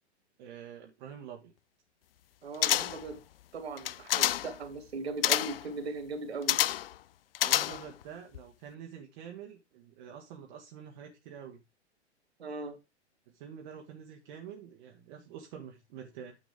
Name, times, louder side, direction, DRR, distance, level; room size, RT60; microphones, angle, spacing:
voice 1, 0.4-1.5 7.4-11.6 13.3-16.4, right 8 dB, 45° right, 1.7 m, -47 dB
voice 2, 2.4-3.2 3.5-6.6 12.4-12.8, right 3 dB, 65° right, 2.8 m, -38 dB
sound 1, 2.6-3.1 3.8-4.6 5.2-5.7 6.5-6.9 7.4-8.0 8.3-8.4, left 12 dB, 55° left, 0.5 m, -28 dB
9.7 x 7.1 x 3.6 m
figure-of-eight pair, 100°, 34 cm